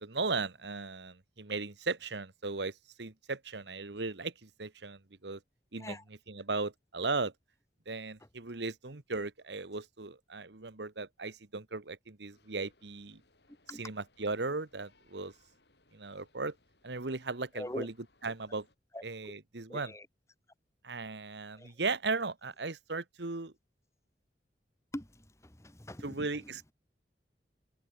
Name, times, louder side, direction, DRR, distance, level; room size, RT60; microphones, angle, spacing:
voice 1, 0.0-5.4 5.7-6.0 6.3-7.3 7.9-13.2 13.8-15.3 15.9-16.5 16.8-17.9 18.2-18.7 19.0-19.9 20.8-23.5 26.0-26.7, right 3 dB, 75° right, 1.4 m, -37 dB
sound 1, 12.3-18.7, left 2 dB, 70° left, 7.1 m, -69 dB
voice 2, 17.5-17.9 18.9-19.0 19.7-20.1 21.5-21.7 24.9-26.6, left 1 dB, 15° left, 1.7 m, -43 dB
head